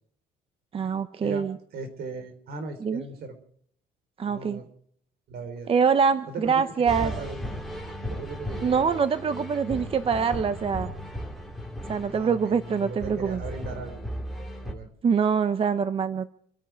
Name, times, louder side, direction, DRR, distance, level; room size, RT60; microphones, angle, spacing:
voice 1, 0.7-1.6 2.8-3.0 4.2-4.6 5.7-7.1 8.6-10.9 11.9-13.4 15.0-16.3, right 6 dB, 35° right, 12 dB, 0.8 m, -24 dB
voice 2, 1.7-3.4 4.2-4.7 5.3-5.7 6.3-7.6 8.0-8.9 9.7-10.0 12.1-12.5 12.8-14.0 14.6-14.9, right 4 dB, 65° right, 8 dB, 4.0 m, -38 dB
sound 1, 6.9-14.7, equal, ahead, 3.0 m, -36 dB
27.0 x 10.0 x 4.7 m, 0.64 s
cardioid pair, 110°, 17 cm